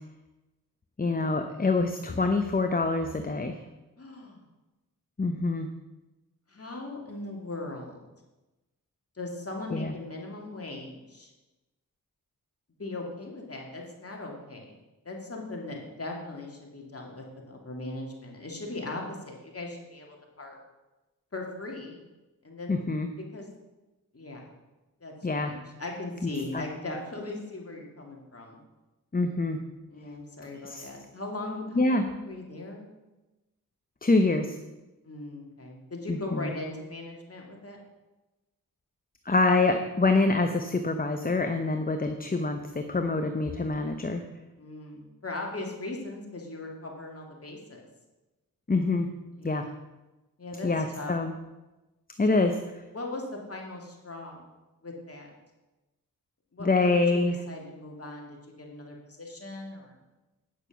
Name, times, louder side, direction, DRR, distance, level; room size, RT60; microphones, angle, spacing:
voice 1, 1.0-3.6 5.2-5.7 9.7-9.9 22.7-23.1 25.2-25.5 26.5-26.6 29.1-29.6 30.6-30.8 31.7-32.0 34.0-34.6 36.1-36.5 39.3-44.2 48.7-49.1 49.4-49.7 50.6-51.3 52.2-52.5 56.6-57.4, left 3 dB, 25° left, 6 dB, 0.8 m, -25 dB
voice 2, 4.0-4.4 6.5-8.0 9.1-11.3 12.8-14.8 15.0-20.6 21.3-22.0 22.4-22.8 23.3-23.5 24.1-24.4 25.0-28.6 29.9-32.9 35.0-37.8 44.6-47.8 49.4-49.8 50.4-51.1 52.3-52.6 52.9-54.5 54.8-55.3 56.5-60.0, left 2 dB, 40° left, 0 dB, 2.5 m, -39 dB
9.1 x 6.6 x 6.0 m, 1.1 s
cardioid pair, 50°, 37 cm